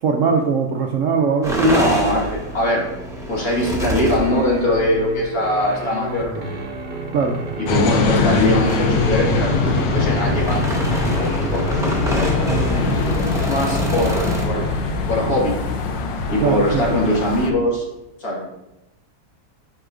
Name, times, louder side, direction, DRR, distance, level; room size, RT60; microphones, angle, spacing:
voice 1, 0.0-1.7 7.1-7.4 12.5-13.0 16.4-17.1, right 5 dB, 80° right, 2 dB, 0.7 m, -21 dB
sound 1, 1.4-5.0 5.9-6.1 6.4-6.7 7.1-14.4, right 1 dB, 5° right, 0.5 m, -27 dB
voice 2, 1.6-2.9 3.3-6.5 7.6-11.8 12.1-14.7 15.1-15.6 16.3-17.8 18.2-18.4, left 1 dB, 55° left, -3 dB, 2.1 m, -22 dB
sound 2, 2.1-15.5, right 2 dB, 35° right, 0.8 m, -33 dB
sound 3, 7.7-17.5, left 3 dB, 80° left, 1.4 m, -22 dB
7.9 x 5.2 x 2.5 m, 0.94 s
omnidirectional pair, 1.9 m